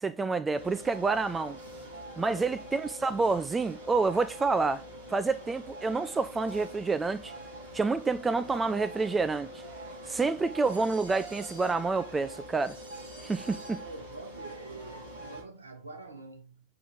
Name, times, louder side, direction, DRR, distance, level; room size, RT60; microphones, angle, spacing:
voice 1, 0.0-1.6 2.2-4.8 5.1-7.3 7.7-9.5 10.1-12.8 13.2-13.8, right 4 dB, 15° right, 0.5 m, -28 dB
sound 1, 0.6-15.4, right 1 dB, 50° right, 4.7 m, -44 dB
voice 2, 2.2-2.6 13.8-16.6, right 3 dB, 75° right, 1.6 m, -46 dB
6.8 x 5.9 x 3.6 m
figure-of-eight pair, 90°, 0 cm